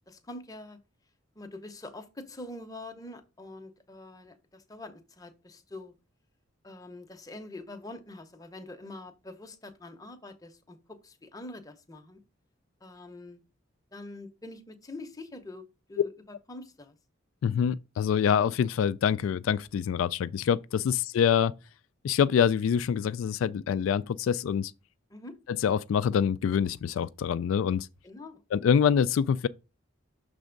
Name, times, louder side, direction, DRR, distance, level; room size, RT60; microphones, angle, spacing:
voice 1, 0.1-0.8 1.4-6.0 6.6-12.2 12.8-13.4 13.9-16.1 16.5-17.0 25.1-25.4 28.0-28.4, left 2 dB, 20° left, 0.7 m, -45 dB
voice 2, 17.4-21.5 22.0-24.7 25.6-27.9 28.5-29.5, left 8 dB, 90° left, 0.3 m, -25 dB
6.3 x 3.4 x 5.1 m
head